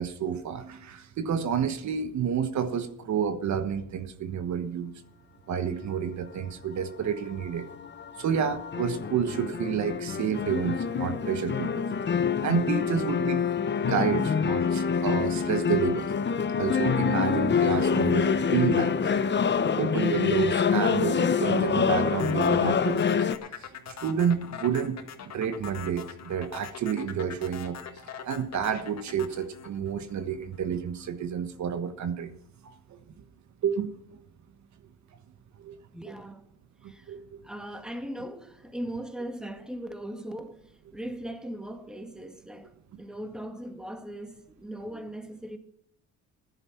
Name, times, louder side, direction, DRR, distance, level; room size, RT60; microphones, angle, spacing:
voice 1, 0.0-4.9 5.5-7.7 8.2-11.9 12.4-13.5 13.8-16.1 16.6-19.0 19.8-23.3 23.6-25.0 25.3-27.9 28.3-32.3 32.6-33.0 33.6-34.2 35.6-35.8 36.1-36.2 36.8-37.4, right 7 dB, 65° right, 1.4 m, -30 dB
sound 1, 7.1-23.3, left 6 dB, 35° left, 0.9 m, -26 dB
sound 2, 22.2-30.6, left 8 dB, 60° left, 1.9 m, -42 dB
voice 2, 35.9-36.4 36.8-37.2 37.4-45.6, right 1 dB, ahead, 2.0 m, -39 dB
14.0 x 11.0 x 5.8 m
cardioid pair, 90°, 30 cm